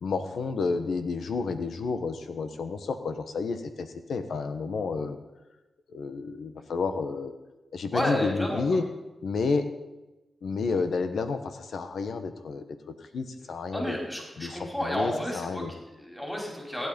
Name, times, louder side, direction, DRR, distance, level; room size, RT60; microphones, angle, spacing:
voice 1, 0.0-5.2 5.9-7.3 7.7-8.8 9.2-9.7 10.4-12.6 13.1-14.0 14.4-15.7, left 4 dB, 80° left, 9 dB, 1.2 m, -30 dB
voice 2, 7.9-8.6 13.7-16.9, equal, 10° left, -1 dB, 4.7 m, -31 dB
16.0 x 9.4 x 5.3 m, 1.0 s
cardioid pair, 50°, 0 cm